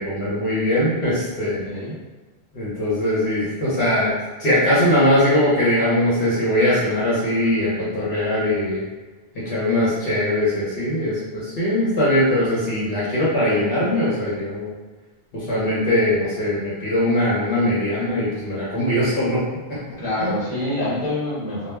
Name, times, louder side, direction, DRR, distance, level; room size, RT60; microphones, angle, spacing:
voice 1, 0.0-1.6 2.5-4.1 4.4-8.8 9.3-14.7 15.3-19.8 20.2-20.3, left 1 dB, 65° left, -8 dB, 1.0 m, -21 dB
voice 2, 1.4-2.0 20.0-21.7, left 1 dB, 30° left, -9 dB, 1.0 m, -26 dB
2.2 x 2.0 x 3.3 m, 1.3 s
omnidirectional pair, 1.1 m